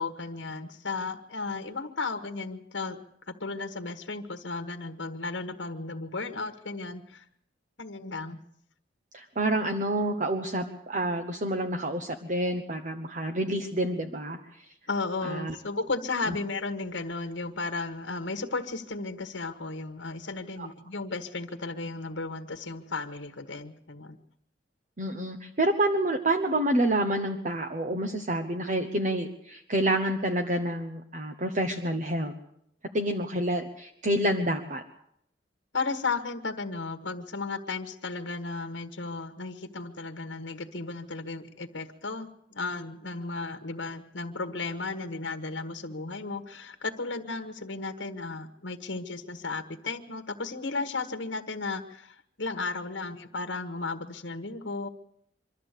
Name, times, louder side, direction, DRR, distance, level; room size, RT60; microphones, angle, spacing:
voice 1, 0.0-7.2 7.8-8.4 14.9-24.2 35.7-54.9, left 3 dB, 75° left, 7 dB, 1.4 m, -34 dB
voice 2, 9.1-14.4 15.2-15.5 20.6-20.7 25.0-32.3 32.9-34.8, right 1 dB, 45° right, 5 dB, 1.2 m, -28 dB
24.5 x 13.0 x 8.3 m, 0.73 s
head